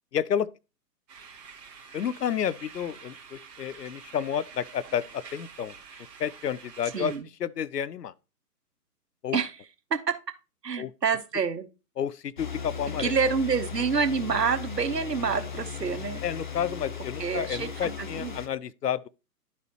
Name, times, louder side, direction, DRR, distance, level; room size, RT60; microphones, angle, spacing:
voice 1, 0.1-0.5 1.9-5.7 6.2-7.1 7.4-8.1 9.2-9.4 10.8-10.9 12.0-13.1 16.2-19.1, left 9 dB, 80° left, 0.6 m, -30 dB
sound 1, 1.1-7.2, right 6 dB, 20° right, 2.0 m, -48 dB
voice 2, 6.9-7.2 9.3-9.5 9.9-10.2 10.6-11.7 13.0-16.2 17.2-18.3, right 5 dB, 85° right, 1.0 m, -27 dB
sound 2, 12.4-18.5, left 6 dB, 30° left, 0.5 m, -37 dB
11.5 x 4.2 x 2.8 m
figure-of-eight pair, 130°, 48 cm